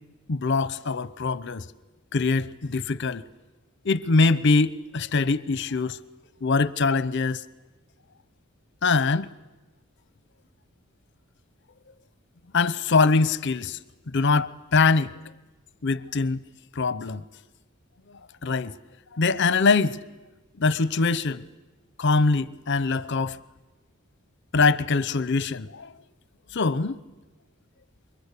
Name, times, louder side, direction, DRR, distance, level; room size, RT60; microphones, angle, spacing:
voice 1, 0.3-1.6 2.1-3.2 3.8-6.0 6.4-7.4 8.8-9.3 12.5-13.8 14.1-15.1 15.8-16.4 16.7-17.2 18.4-18.7 19.1-20.0 20.6-21.5 22.0-23.4 24.5-25.9 26.5-27.0, left 4 dB, 55° left, 0.8 m, -23 dB
28.5 x 24.0 x 8.4 m
head